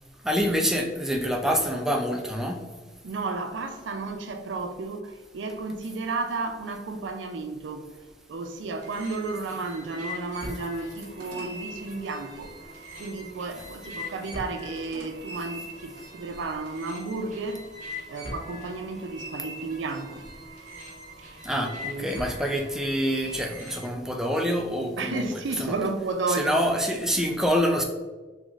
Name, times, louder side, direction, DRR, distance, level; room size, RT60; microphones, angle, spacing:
voice 1, 0.2-2.6 21.4-25.3 25.6-25.7 26.3-27.8, equal, 5° right, 2 dB, 0.3 m, -26 dB
voice 2, 3.0-7.8 8.3-12.5 13.0-17.7 18.1-20.2 21.5-22.3 25.0-26.6 26.8-27.2, right 3 dB, 90° right, 6 dB, 0.4 m, -33 dB
sound 1, 8.8-23.9, left 1 dB, 50° right, 1.1 m, -41 dB
4.0 x 2.9 x 2.4 m, 1.3 s
head